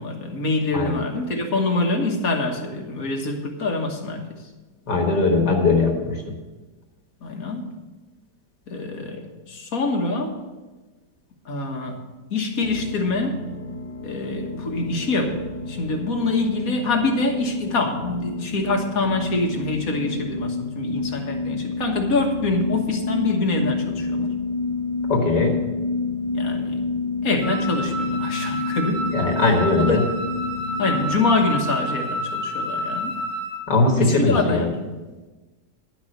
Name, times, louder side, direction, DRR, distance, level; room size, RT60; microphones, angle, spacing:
voice 1, 0.0-4.3 7.2-7.7 8.7-10.4 11.5-12.0 12.3-13.5 14.0-24.4 26.3-26.9 27.2-29.1 29.4-30.1 30.8-33.2 34.0-34.7, left 3 dB, 55° left, 2 dB, 1.8 m, -25 dB
voice 2, 4.9-6.2 25.1-25.6 29.1-30.0 33.7-34.7, left 3 dB, 75° left, 1 dB, 2.2 m, -20 dB
sound 1, 12.6-31.6, left 3 dB, 25° left, 0.9 m, -29 dB
Wind instrument woodwind instrument, 27.4-33.6, right 1 dB, 80° right, 4.9 m, -29 dB
11.0 x 6.2 x 7.9 m, 1.2 s
omnidirectional pair, 1.8 m